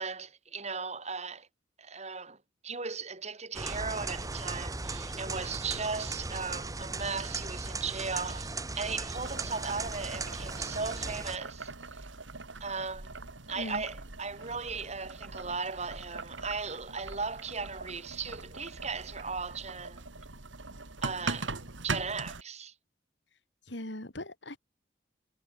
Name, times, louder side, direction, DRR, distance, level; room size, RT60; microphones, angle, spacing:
voice 1, 0.0-1.5 1.8-2.4 2.6-12.0 12.6-13.1 13.5-20.0 21.0-22.7, right 4 dB, 35° right, 4.4 m, -37 dB
sound 1, 3.5-11.4, right 3 dB, 20° right, 1.4 m, -37 dB
Boiling, 9.2-22.4, right 3 dB, 90° right, 2.5 m, -41 dB
voice 2, 23.7-24.6, left 1 dB, 70° left, 3.4 m, -39 dB
head